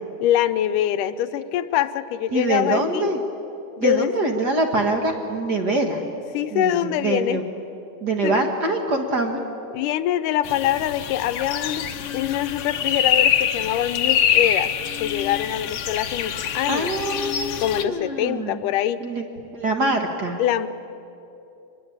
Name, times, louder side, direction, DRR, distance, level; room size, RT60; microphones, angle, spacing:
voice 1, 0.2-3.1 3.8-4.1 6.3-7.4 8.2-8.5 9.7-14.7 15.0-16.9 17.6-19.0 20.4-20.7, left 12 dB, 85° left, 12 dB, 2.3 m, -24 dB
voice 2, 2.3-3.2 3.8-6.0 6.5-7.4 8.0-9.4 16.7-18.6 19.0-19.2 19.5-20.4, right 2 dB, 40° right, 3 dB, 1.5 m, -24 dB
sound 1, 10.5-17.8, left 9 dB, 65° left, 1.5 m, -24 dB
24.5 x 21.0 x 8.7 m, 2.8 s
omnidirectional pair, 3.6 m